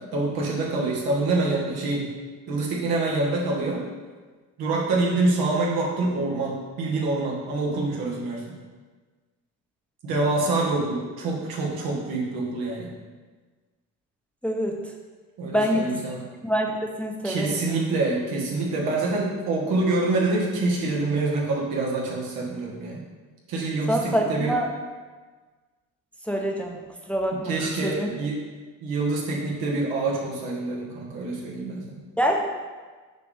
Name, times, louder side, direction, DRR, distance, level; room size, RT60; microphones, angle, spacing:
voice 1, 0.1-2.1 2.5-3.9 4.6-8.6 10.0-12.9 15.4-16.2 17.2-23.0 23.5-24.6 27.3-28.4 28.8-32.0, right 2 dB, 75° right, -3 dB, 1.7 m, -26 dB
voice 2, 14.4-14.8 15.5-16.0 16.4-17.6 23.9-24.7 26.3-27.5 27.8-28.1 32.2-32.4, equal, 5° left, 0 dB, 0.9 m, -25 dB
6.4 x 5.0 x 3.5 m, 1.4 s
supercardioid pair, 75°, 37 cm